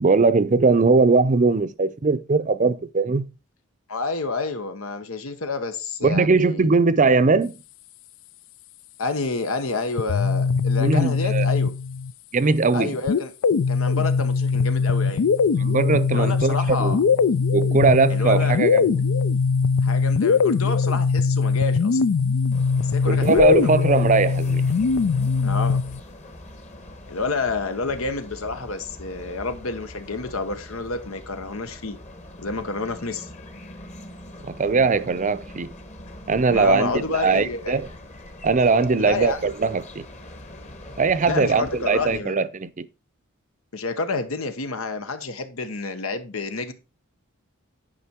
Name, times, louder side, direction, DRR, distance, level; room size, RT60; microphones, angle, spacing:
voice 1, 0.0-3.2 6.0-7.5 10.8-11.5 12.3-13.0 15.5-17.0 17.5-19.0 23.1-24.7 34.4-35.7 36.3-36.9 37.2-37.9 38.4-40.1 41.0-42.9, right 4 dB, 40° right, 0.6 m, -20 dB
voice 2, 3.9-6.8 9.0-11.7 12.7-13.3 13.7-15.2 16.1-17.0 18.1-18.6 19.8-22.0 22.8-23.8 25.4-25.8 27.1-32.0 32.4-33.3 36.5-37.8 39.0-39.5 41.3-42.4 43.7-46.7, left 3 dB, 90° left, 1.2 m, -29 dB
sound 1, 10.0-12.1 13.1-26.0, left 5 dB, 70° left, 0.4 m, -21 dB
sound 2, 22.5-42.2, left 1 dB, 35° left, 1.3 m, -42 dB
10.5 x 5.2 x 4.4 m
head